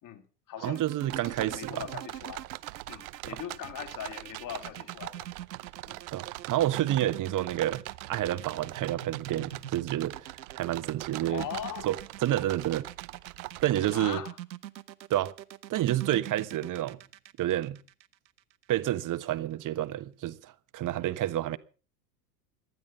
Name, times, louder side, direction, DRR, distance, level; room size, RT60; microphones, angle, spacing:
voice 1, 0.0-0.8 1.2-2.5 2.9-5.3 5.8-6.0 11.3-11.9 13.9-14.4, left 10 dB, 40° left, 2.9 m, -40 dB
voice 2, 0.6-1.8 6.1-11.4 11.8-12.0 12.2-12.9 13.6-14.2 15.1-15.3 15.7-17.0 17.4-17.8 18.7-21.6, right 13 dB, 40° right, 1.3 m, -29 dB
sound 1, 0.6-18.8, right 12 dB, 85° right, 1.0 m, -44 dB
sound 2, 1.0-14.1, right 22 dB, 60° right, 0.8 m, -42 dB
19.0 x 12.5 x 5.4 m
hypercardioid pair, 85°, 50 cm